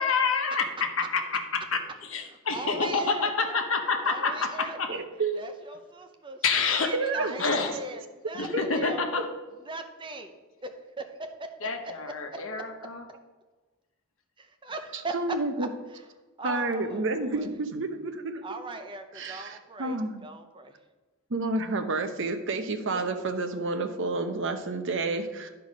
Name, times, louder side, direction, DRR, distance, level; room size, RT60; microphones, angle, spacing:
voice 1, 0.0-1.8 2.1-4.9 6.4-6.9 7.4-7.8 8.3-9.2 11.6-13.1, left 4 dB, 65° left, 4 dB, 1.1 m, -28 dB
voice 2, 2.5-3.6 4.0-5.0 5.3-6.4 6.7-9.3 9.7-10.3 10.6-10.7 11.0-11.5 14.4-15.1 15.6-15.7 16.4-17.5 18.4-20.7 23.2-23.3, right 3 dB, 25° right, 6 dB, 0.7 m, -39 dB
voice 3, 4.9-5.5 6.9-7.5 8.5-8.6 14.9-15.7 16.4-18.4 19.1-20.3 21.3-25.5, right 3 dB, 60° right, 8 dB, 0.8 m, -30 dB
11.0 x 4.7 x 5.2 m, 1.2 s
head